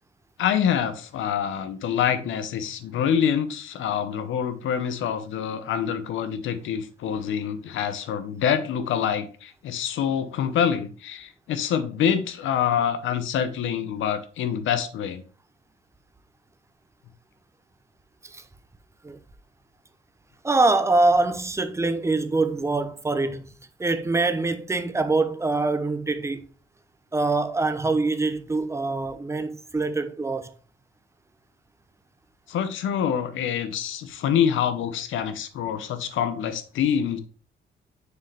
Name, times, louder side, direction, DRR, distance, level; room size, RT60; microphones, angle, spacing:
voice 1, 0.4-15.2 32.5-37.2, left 8 dB, 80° left, 0.9 m, -26 dB
voice 2, 20.4-26.5 27.1-30.5, right 3 dB, 15° right, 0.8 m, -24 dB
6.6 x 4.7 x 3.5 m
cardioid pair, 90°, 20 cm